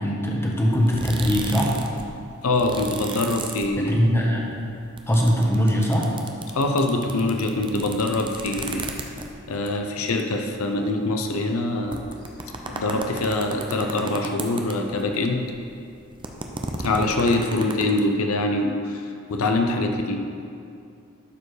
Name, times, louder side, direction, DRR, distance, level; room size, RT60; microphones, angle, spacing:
voice 1, 0.0-1.7 3.8-4.5 5.1-6.1, equal, 10° left, -2 dB, 1.1 m, -21 dB
sound 1, 0.7-2.0 2.3-4.2 4.5-9.5 10.1-10.2 10.4-10.5 11.2-11.3 11.7-15.1 15.4-17.8, right 3 dB, 25° right, 0.6 m, -34 dB
voice 2, 2.4-4.0 6.5-8.9 9.5-12.0 12.7-15.5 16.8-20.2, left 2 dB, 80° left, 4 dB, 0.7 m, -24 dB
12.0 x 4.7 x 4.9 m, 2.5 s
head